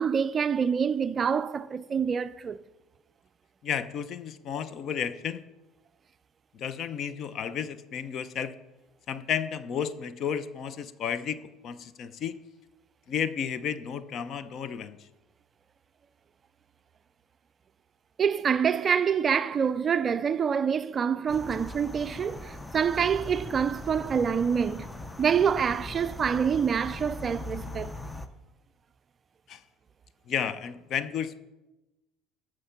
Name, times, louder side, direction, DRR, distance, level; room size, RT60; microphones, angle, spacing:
voice 1, 0.0-2.6 18.2-24.9 25.2-27.9, right 7 dB, 30° right, 0.4 m, -26 dB
voice 2, 3.6-5.4 6.5-8.5 9.1-11.4 11.6-12.3 13.1-15.0 29.5-29.6 30.3-31.4, left 8 dB, 50° left, 0.7 m, -32 dB
sound 1, 21.3-28.3, left 2 dB, 10° left, 0.7 m, -40 dB
12.5 x 6.4 x 5.8 m
supercardioid pair, 115°, 0 cm